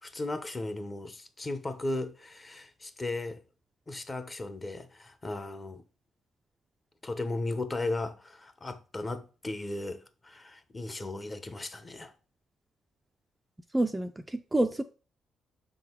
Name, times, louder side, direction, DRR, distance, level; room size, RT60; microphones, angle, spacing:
voice 1, 0.0-3.4 3.9-5.8 7.0-12.1, left 2 dB, 25° left, 0.8 m, -36 dB
voice 2, 13.7-14.8, right 1 dB, 15° right, 0.4 m, -28 dB
6.1 x 3.9 x 4.5 m
cardioid pair, 90°, 0 cm